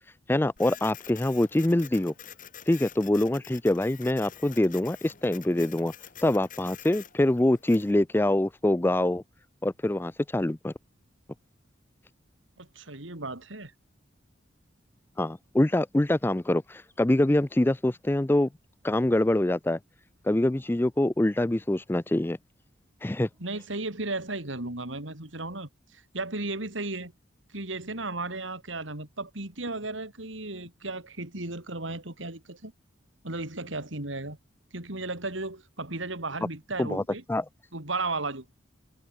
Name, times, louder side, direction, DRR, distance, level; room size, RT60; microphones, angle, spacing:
voice 1, 0.3-2.1 2.7-5.9 6.2-9.2 9.6-10.7 15.2-18.5 18.8-19.8 20.2-22.4 23.0-23.3 36.8-37.0 37.3-37.5, left 1 dB, 10° left, 0.4 m, -25 dB
Printer, 0.6-7.9, left 9 dB, 45° left, 2.2 m, -47 dB
voice 2, 12.6-13.7 23.4-27.1 27.5-32.7 33.2-34.4 34.7-37.2 37.7-38.5, right 2 dB, 85° right, 4.2 m, -35 dB
head